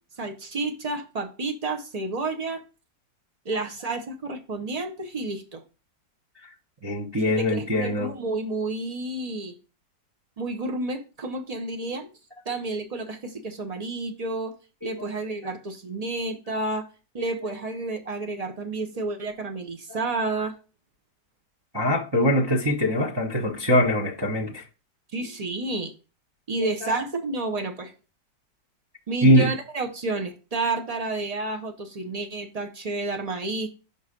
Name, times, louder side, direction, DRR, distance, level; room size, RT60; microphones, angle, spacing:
voice 1, 0.2-2.6 3.4-5.6 7.3-9.5 10.4-12.1 12.5-14.5 14.8-16.8 17.1-20.5 25.1-25.9 26.5-27.9 29.1-33.7, right 2 dB, 60° right, 0.4 m, -30 dB
voice 2, 6.8-8.1 14.8-14.9 16.1-16.2 16.5-16.6 17.2-17.3 21.7-24.6 26.8-27.0 29.2-29.5, equal, 20° right, 0.6 m, -22 dB
5.4 x 4.7 x 5.1 m
omnidirectional pair, 1.9 m